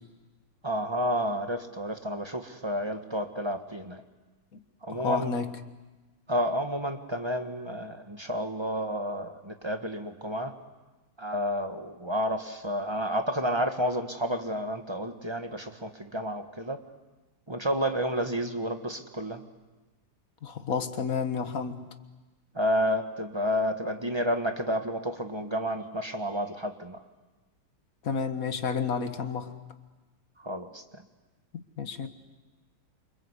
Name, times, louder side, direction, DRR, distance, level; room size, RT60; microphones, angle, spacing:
voice 1, 0.6-4.0 4.8-5.3 6.3-10.6 11.2-16.8 17.5-19.4 22.5-27.0 30.4-31.0, equal, 15° right, 6 dB, 1.3 m, -30 dB
voice 2, 4.9-5.5 20.4-21.9 28.0-29.6 31.5-32.1, left 5 dB, 45° left, 8 dB, 1.7 m, -31 dB
28.5 x 26.0 x 8.2 m, 1.2 s
omnidirectional pair, 2.3 m